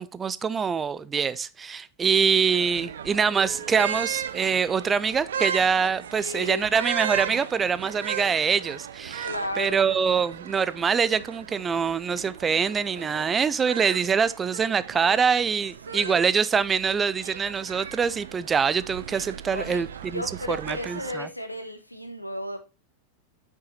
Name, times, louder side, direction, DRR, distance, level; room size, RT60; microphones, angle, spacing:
voice 1, 0.0-9.3 9.6-21.3, right 6 dB, 20° right, 0.6 m, -24 dB
Telephone, 2.5-2.6 3.2-8.1 8.6-8.7 9.1-9.3 9.6-9.9 10.3-10.4, right 6 dB, 40° right, 3.4 m, -48 dB
sound 1, 2.5-21.1, right 8 dB, 65° right, 0.7 m, -37 dB
voice 2, 6.2-6.7 9.2-9.8 15.9-16.1 19.5-19.9 20.1-22.6, left 1 dB, 90° left, 1.4 m, -34 dB
8.3 x 6.3 x 4.2 m
figure-of-eight pair, 90°, 0 cm